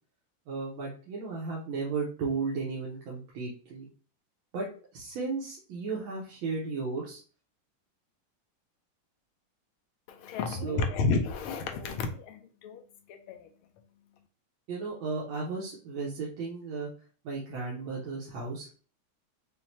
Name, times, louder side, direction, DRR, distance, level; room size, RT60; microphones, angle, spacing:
voice 1, 0.5-3.9 4.5-4.7 4.9-7.2 10.5-10.8 14.7-16.9 17.2-18.7, right 4 dB, 75° right, 1.6 m, -34 dB
voice 2, 10.1-12.8 13.1-13.5, left 4 dB, 90° left, 1.5 m, -31 dB
6.1 x 2.2 x 2.7 m
omnidirectional pair, 2.3 m